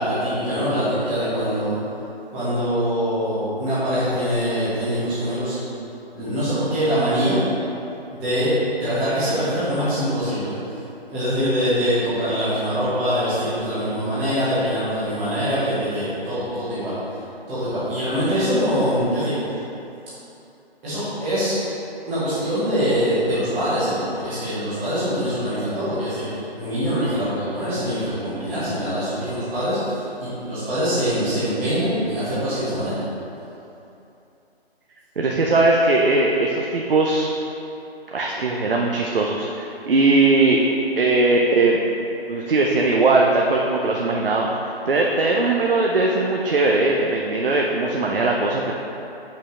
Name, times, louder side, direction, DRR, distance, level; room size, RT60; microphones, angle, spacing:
voice 1, 0.0-1.7 2.3-5.6 6.1-7.4 8.1-8.5 8.8-10.5 11.1-17.2 17.5-19.4 20.8-21.6 22.1-33.0, equal, 5° right, -14 dB, 0.6 m, -23 dB
voice 2, 35.2-37.3 38.1-40.6 41.0-41.8 42.3-44.5 44.9-48.7, right 3 dB, 60° right, -1 dB, 0.7 m, -19 dB
6.8 x 5.6 x 3.7 m, 2.9 s
figure-of-eight pair, 150°, 32 cm